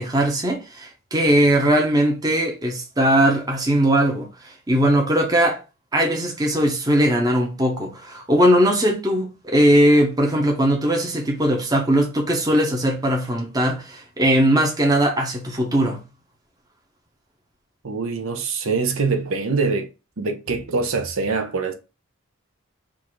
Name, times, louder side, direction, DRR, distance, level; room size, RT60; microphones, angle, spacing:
voice 1, 0.0-5.6 5.9-16.0, right 1 dB, 15° right, 0.8 m, -19 dB
voice 2, 17.8-19.9 20.2-21.7, right 4 dB, 65° right, 0.7 m, -24 dB
3.7 x 2.5 x 4.6 m
head